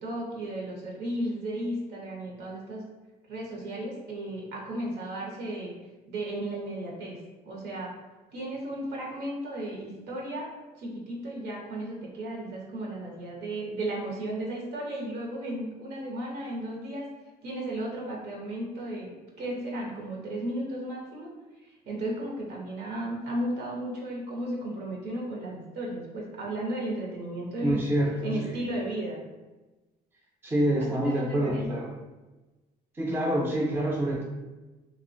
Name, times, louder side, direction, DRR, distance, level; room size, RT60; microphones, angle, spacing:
voice 1, 0.0-2.8 3.3-5.7 6.1-7.2 7.4-7.9 8.3-10.5 10.8-17.1 17.4-19.1 19.4-21.3 21.8-27.8 28.2-29.2 30.8-31.8, right 1 dB, 75° right, -2 dB, 0.7 m, -34 dB
voice 2, 27.6-28.6 30.4-31.9 32.9-34.2, right 1 dB, 15° right, -2 dB, 0.4 m, -27 dB
2.8 x 2.1 x 2.5 m, 1.1 s
cardioid pair, 110°, 17 cm